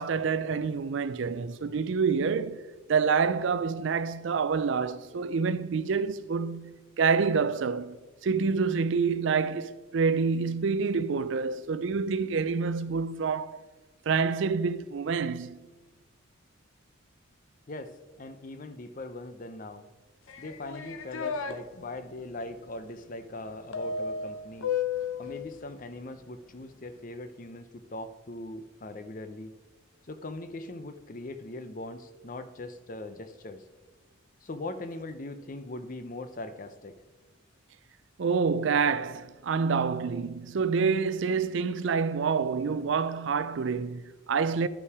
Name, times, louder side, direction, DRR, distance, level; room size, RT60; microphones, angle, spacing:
voice 1, 0.0-2.6 2.9-8.0 8.2-13.6 14.1-15.7 38.2-44.7, right 5 dB, 65° right, 0.4 m, -27 dB
voice 2, 0.6-2.1 17.7-19.9 20.4-24.7 25.2-29.5 30.1-33.6 34.4-36.9, left 2 dB, 40° left, 0.6 m, -41 dB
sound 1, 20.3-21.5 23.7-25.3, left 6 dB, 80° left, 0.8 m, -32 dB
11.5 x 5.6 x 4.8 m
head